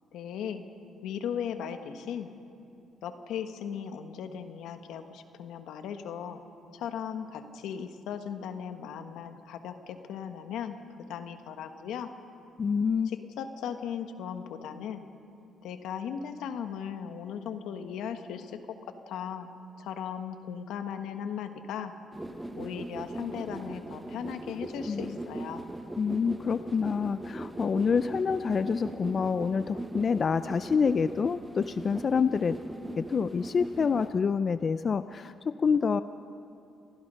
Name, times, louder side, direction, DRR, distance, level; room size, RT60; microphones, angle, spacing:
voice 1, 0.1-0.7 1.0-2.3 3.0-6.4 6.7-10.7 11.1-12.1 13.0-15.0 15.6-18.6 19.1-19.5 19.8-21.9 22.6-25.6, left 8 dB, 85° left, 7 dB, 1.4 m, -37 dB
voice 2, 12.6-13.1 24.9-25.2 26.0-32.6 33.0-36.0, left 5 dB, 45° left, 13 dB, 0.5 m, -27 dB
sound 1, 22.1-34.1, right 1 dB, 15° right, 1.2 m, -39 dB
28.5 x 20.0 x 5.6 m, 2.7 s
cardioid pair, 90°, 0 cm